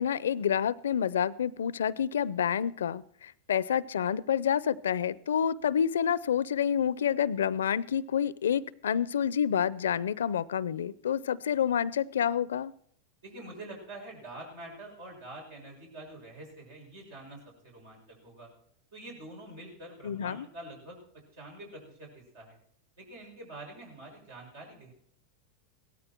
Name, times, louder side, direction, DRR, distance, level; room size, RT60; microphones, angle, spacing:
voice 1, 0.0-12.7 20.0-20.4, left 8 dB, 90° left, 20 dB, 0.5 m, -28 dB
voice 2, 13.2-18.5 18.9-21.0 21.3-22.6 23.0-24.9, right 1 dB, 75° right, 1 dB, 6.5 m, -46 dB
16.5 x 13.5 x 4.5 m, 0.65 s
hypercardioid pair, 115°, 0 cm